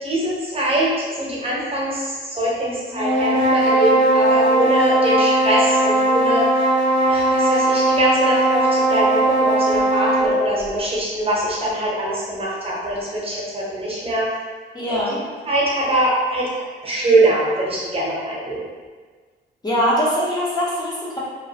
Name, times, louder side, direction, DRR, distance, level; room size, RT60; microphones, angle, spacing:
voice 1, 0.0-6.8 7.1-14.3 14.9-15.0 15.5-16.5 16.8-18.6, right 1 dB, 30° right, -5 dB, 0.9 m, -23 dB
sound 1, 2.9-10.4, right 1 dB, 65° left, 1.2 m, -18 dB
voice 2, 14.7-15.2 19.6-21.2, equal, 20° left, -7 dB, 0.8 m, -22 dB
3.0 x 2.4 x 2.8 m, 1.5 s
cardioid pair, 90°, 20 cm